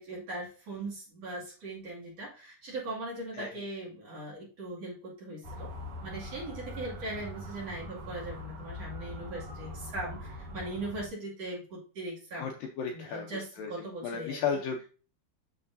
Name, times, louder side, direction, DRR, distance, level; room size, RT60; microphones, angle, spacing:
voice 1, 0.0-5.7 6.0-12.5 12.9-14.4, right 2 dB, 45° right, -5 dB, 3.1 m, -40 dB
Motor vehicle (road) / Siren, 5.4-11.1, left 1 dB, 65° right, 1.4 m, -42 dB
voice 2, 12.4-14.9, left 6 dB, 75° left, 3 dB, 2.1 m, -35 dB
8.2 x 6.8 x 2.6 m, 0.37 s
omnidirectional pair, 4.7 m